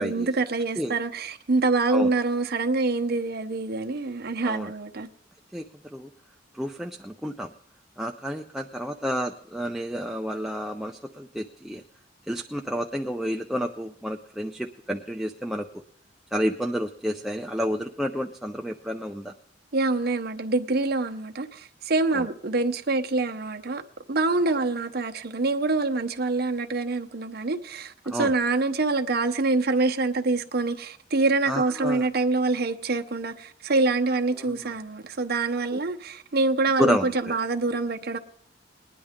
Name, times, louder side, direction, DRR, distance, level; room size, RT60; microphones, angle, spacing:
voice 1, 0.0-5.1 19.7-23.8 24.1-38.2, right 3 dB, 55° right, 0.8 m, -25 dB
voice 2, 5.5-6.1 6.5-7.5 8.0-11.8 12.3-15.7 16.3-19.3 22.1-22.3 28.1-28.3 31.5-32.0 34.4-34.7 35.7-35.8 36.8-37.4, equal, ahead, 0.4 m, -30 dB
20.0 x 10.0 x 3.6 m
head